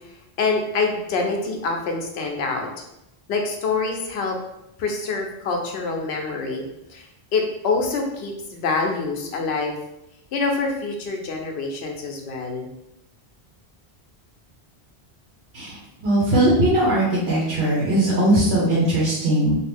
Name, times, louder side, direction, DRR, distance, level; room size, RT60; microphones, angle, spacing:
voice 1, 0.4-2.7 3.3-4.4 4.8-6.6 6.9-7.1 7.3-9.7 10.3-12.7, left 4 dB, 75° left, 2 dB, 0.8 m, -25 dB
voice 2, 15.5-19.5, right 1 dB, 75° right, -6 dB, 1.1 m, -20 dB
2.7 x 2.5 x 3.4 m, 0.87 s
omnidirectional pair, 1.1 m